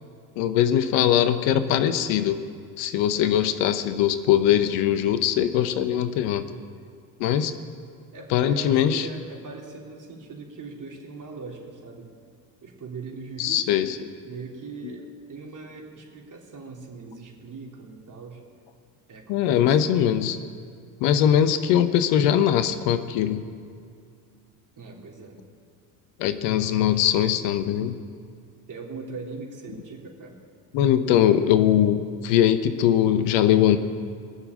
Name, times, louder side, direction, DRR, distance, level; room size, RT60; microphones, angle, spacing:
voice 1, 0.4-2.4 2.8-6.4 7.2-7.5 8.3-9.1 13.4-14.0 19.3-20.4 21.0-23.4 26.2-28.0 30.7-33.8, left 10 dB, 65° left, 10 dB, 1.0 m, -21 dB
voice 2, 8.1-12.1 12.6-13.8 14.2-18.4 19.1-20.1 24.8-25.4 26.4-27.1 28.7-30.4, right 4 dB, 40° right, 0 dB, 3.3 m, -41 dB
21.0 x 7.0 x 8.9 m, 2.3 s
hypercardioid pair, 60°, 48 cm